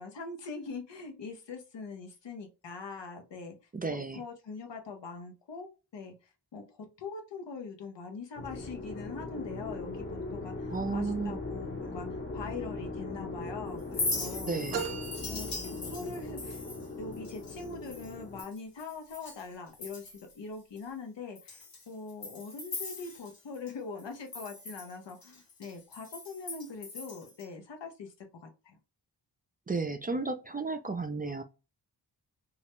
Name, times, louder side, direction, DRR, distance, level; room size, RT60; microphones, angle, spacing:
voice 1, 0.0-3.5 3.9-6.1 6.5-9.9 10.3-14.6 15.3-15.5 15.9-16.6 17.0-28.1 28.4-28.8, left 4 dB, 75° left, 0.8 m, -42 dB
voice 2, 3.7-4.2 10.7-11.4 14.5-14.8 29.7-31.4, right 3 dB, 20° right, 0.3 m, -33 dB
sound 1, 8.4-18.4, left 3 dB, 25° left, 0.8 m, -39 dB
Chink clink, 13.8-19.5 19.7-20.3 20.8-20.9 21.3-23.7 24.0-27.4, left 2 dB, 55° left, 1.1 m, -40 dB
sound 2, 14.7-16.4, right 6 dB, 70° right, 0.6 m, -39 dB
2.4 x 2.0 x 2.9 m
cardioid pair, 45°, 43 cm